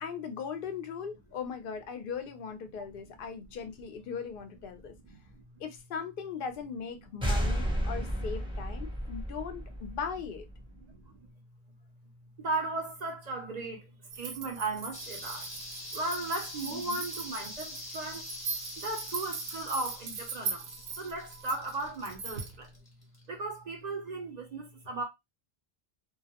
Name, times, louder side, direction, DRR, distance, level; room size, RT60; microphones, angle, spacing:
voice 1, 0.0-4.9 5.6-10.5 16.7-17.0, left 6 dB, 65° left, 0.7 m, -39 dB
voice 2, 5.1-5.4 10.9-11.3 12.4-15.5 15.9-18.3 18.8-22.7 23.3-25.0, right 2 dB, 50° right, 0.6 m, -36 dB
sound 1, 7.2-10.7, equal, 5° right, 0.6 m, -32 dB
sound 2, 14.1-22.6, right 5 dB, 80° right, 0.8 m, -40 dB
sound 3, 14.9-23.2, left 1 dB, 25° left, 0.8 m, -45 dB
2.3 x 2.0 x 2.8 m
omnidirectional pair, 1.0 m